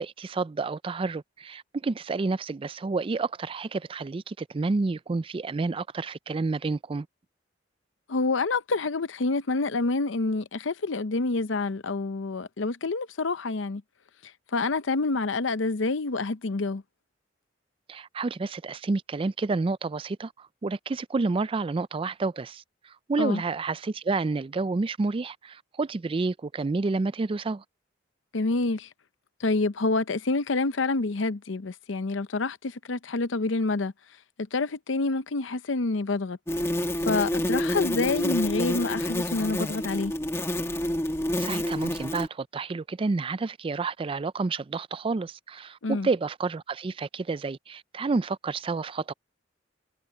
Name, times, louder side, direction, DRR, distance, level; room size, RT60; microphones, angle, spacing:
voice 1, 0.0-7.1 17.9-27.6 41.4-49.1, right 3 dB, 30° right, 0.4 m, -29 dB
voice 2, 8.1-13.8 14.5-16.8 23.2-23.4 28.3-28.9 29.4-33.9 34.5-36.4 37.0-40.1 45.8-46.1, left 3 dB, 75° left, 0.7 m, -27 dB
sound 1, 36.5-42.3, left 1 dB, 15° left, 1.1 m, -28 dB
head